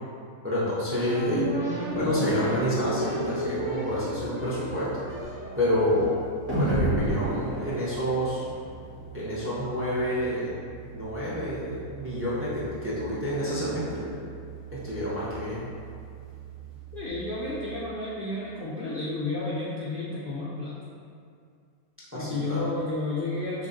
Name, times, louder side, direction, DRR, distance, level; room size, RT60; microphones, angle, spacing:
voice 1, 0.4-1.5 1.9-5.0 5.6-6.1 6.6-8.5 9.1-10.5 10.9-14.1 14.8-15.6 22.1-22.6, equal, 15° right, -8 dB, 0.4 m, -28 dB
sound 1, 1.0-8.5, right 1 dB, 60° right, 1.6 m, -31 dB
sound 2, 1.9-17.8, right 6 dB, 35° right, 1.5 m, -45 dB
voice 2, 16.9-20.8 22.1-23.7, left 2 dB, 85° left, -7 dB, 0.4 m, -32 dB
5.5 x 2.4 x 2.6 m, 2.3 s
omnidirectional pair, 1.5 m